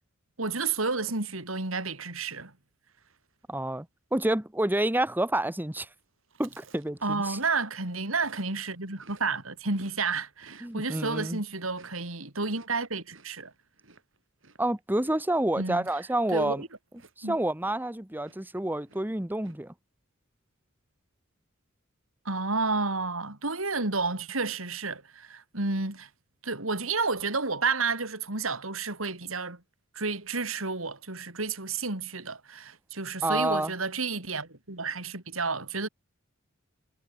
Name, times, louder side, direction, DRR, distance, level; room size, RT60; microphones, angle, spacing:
voice 1, 0.4-2.5 7.0-13.5 15.6-15.9 16.3-16.7 17.2-17.4 22.2-26.1 26.4-29.6 29.9-35.9, right 4 dB, 90° right, 4.3 m, -31 dB
voice 2, 3.5-3.9 4.1-5.9 6.4-7.4 10.6-11.4 14.6-16.6 17.2-19.7 33.2-33.7, right 1 dB, 10° right, 1.1 m, -28 dB
Chewing mastication, 6.3-10.0 10.2-18.0 18.2-18.6 18.8-19.6, right 3 dB, 70° right, 7.8 m, -55 dB
head